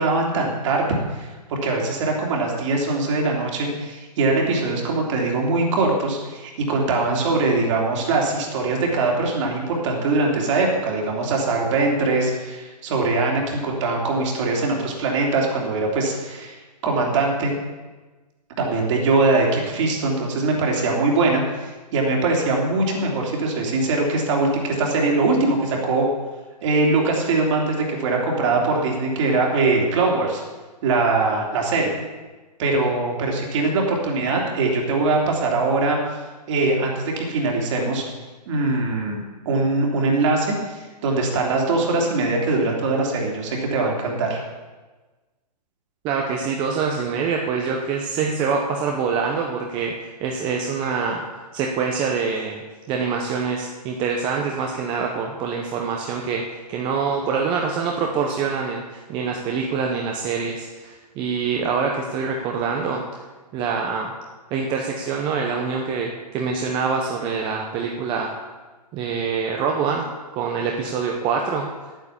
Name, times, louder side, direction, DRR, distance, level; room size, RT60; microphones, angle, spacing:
voice 1, 0.0-16.6 16.8-17.5 18.6-26.1 26.6-30.4 30.8-32.0 32.6-36.0 36.5-38.1 38.5-39.2 39.4-44.4, right 3 dB, 45° right, -1 dB, 3.1 m, -22 dB
voice 2, 46.0-51.2 51.5-63.2 63.5-64.1 64.5-68.3 68.9-70.1 70.3-71.7, right 5 dB, 25° right, 1 dB, 1.0 m, -25 dB
9.6 x 9.1 x 7.1 m, 1.3 s
hypercardioid pair, 140°, 21 cm